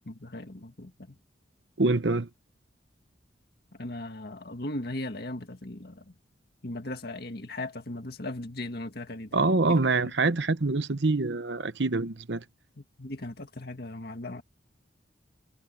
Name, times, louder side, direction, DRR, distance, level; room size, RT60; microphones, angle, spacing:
voice 1, 0.1-1.2 3.7-6.1 6.6-9.4 9.7-10.1 12.8-14.4, left 1 dB, 55° left, 2.1 m, -38 dB
voice 2, 1.8-2.3 9.3-12.4, right 3 dB, 70° right, 1.0 m, -25 dB
head